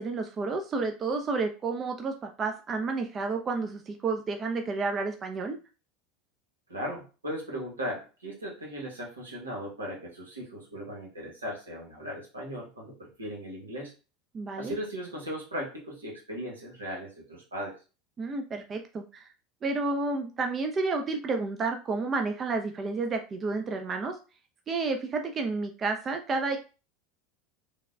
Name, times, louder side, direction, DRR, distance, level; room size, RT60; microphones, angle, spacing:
voice 1, 0.0-5.6 14.3-14.7 18.2-19.3 19.6-24.2 24.7-26.6, right 3 dB, 30° right, 5 dB, 0.4 m, -30 dB
voice 2, 6.7-13.9 14.6-17.8, equal, 90° right, -2 dB, 0.9 m, -37 dB
3.3 x 2.2 x 2.3 m, 0.33 s
hypercardioid pair, 80°, 0 cm